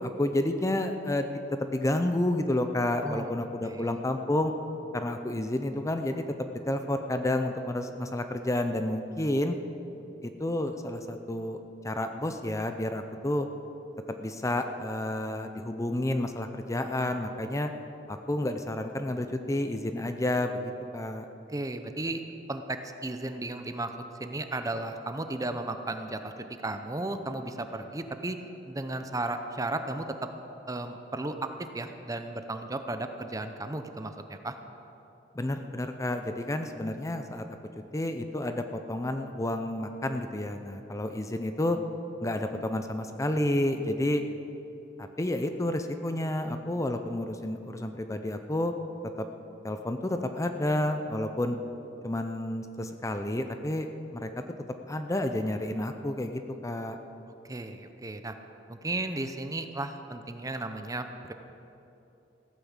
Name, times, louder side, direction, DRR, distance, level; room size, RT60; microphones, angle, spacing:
voice 1, 0.0-4.5 4.9-9.6 10.2-11.6 11.8-13.5 14.2-17.7 18.1-21.3 35.3-37.5 37.9-41.8 42.2-44.2 45.0-48.7 49.2-49.3 49.6-51.6 52.0-54.3 54.9-57.0, left 1 dB, 15° left, 7 dB, 0.6 m, -30 dB
voice 2, 21.5-22.2 22.5-23.9 24.2-26.3 26.6-28.4 28.6-30.0 30.7-31.5 31.7-34.5 57.4-58.4 58.7-61.3, right 2 dB, 20° right, 7 dB, 0.7 m, -34 dB
15.5 x 9.5 x 7.3 m, 2.9 s
head